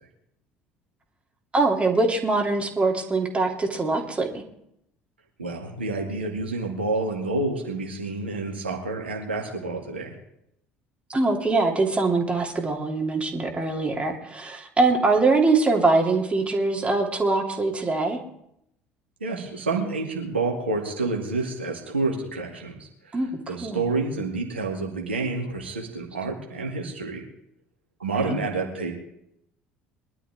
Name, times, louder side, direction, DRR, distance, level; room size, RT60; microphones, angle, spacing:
voice 1, 1.5-4.4 11.1-18.2 23.1-23.3 23.6-23.8 28.2-28.4, right 3 dB, 20° right, 1 dB, 2.9 m, -23 dB
voice 2, 5.4-10.2 19.2-27.2 28.0-28.9, right 3 dB, 80° right, 0 dB, 2.2 m, -29 dB
22.5 x 12.0 x 3.6 m, 0.76 s
figure-of-eight pair, 60°, 6 cm